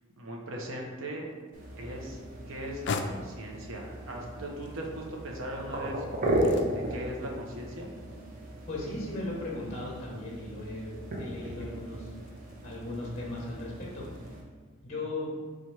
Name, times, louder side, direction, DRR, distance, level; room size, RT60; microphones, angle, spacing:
voice 1, 0.2-1.3 1.8-2.2 2.5-6.0 6.4-7.9, right 1 dB, 75° right, 0 dB, 0.8 m, -39 dB
sound 1, 1.1-14.3, left 4 dB, 60° left, 0.3 m, -45 dB
sound 2, 1.5-14.4, right 1 dB, 45° right, 0.8 m, -36 dB
voice 2, 8.7-12.1 12.6-14.1 14.8-15.3, left 2 dB, 35° left, -3 dB, 0.8 m, -37 dB
4.2 x 2.5 x 4.6 m, 1.4 s
head